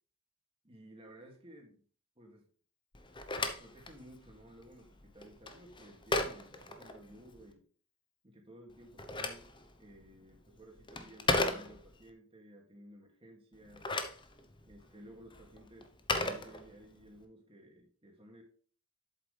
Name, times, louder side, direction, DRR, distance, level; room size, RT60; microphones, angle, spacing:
voice 1, 0.6-1.8 2.2-2.4 3.3-7.6 8.2-9.5 9.8-13.8 14.6-18.4, equal, 25° right, 0 dB, 2.3 m, -55 dB
Telephone, 2.9-7.5 8.7-12.1 13.5-17.1, left 2 dB, 20° left, 0.8 m, -37 dB
8.0 x 7.8 x 3.4 m, 0.44 s
head